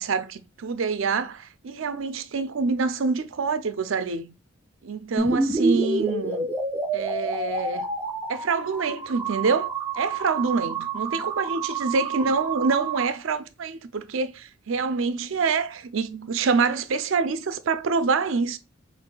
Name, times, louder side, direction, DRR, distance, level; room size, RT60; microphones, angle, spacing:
voice 1, 0.0-4.3 4.8-6.5 6.9-7.9 8.3-18.6, right 4 dB, 70° right, 0.5 m, -26 dB
sound 1, 5.2-13.1, right 3 dB, 10° right, 0.5 m, -28 dB
5.6 x 2.5 x 2.2 m
head